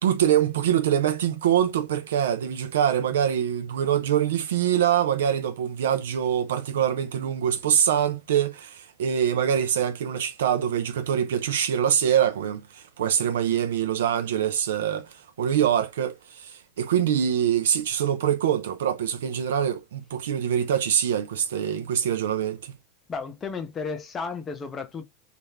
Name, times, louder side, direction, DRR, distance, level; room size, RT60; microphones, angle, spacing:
voice 1, 0.0-22.7, right 9 dB, 85° right, 0.4 m, -24 dB
voice 2, 23.1-25.0, left 5 dB, 25° left, 0.6 m, -33 dB
2.4 x 2.0 x 3.2 m
hypercardioid pair, 110°, 0 cm